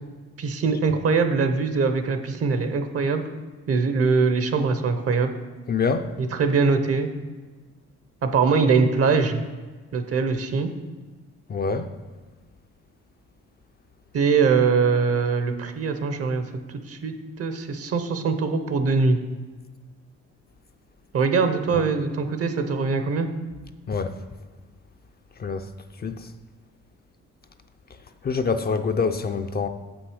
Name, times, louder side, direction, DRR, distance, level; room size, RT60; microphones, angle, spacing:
voice 1, 0.4-3.2 3.7-5.3 6.2-7.1 8.2-9.4 9.9-10.7 14.1-16.4 16.9-19.2 21.1-23.3, right 4 dB, 50° right, 0.9 m, -22 dB
voice 2, 5.7-6.1 11.5-11.9 21.7-21.8 23.9-24.2 25.4-25.7 26.0-26.3 28.2-29.7, left 5 dB, 30° left, 0.5 m, -25 dB
7.5 x 6.2 x 4.9 m
cardioid pair, 90°, 30 cm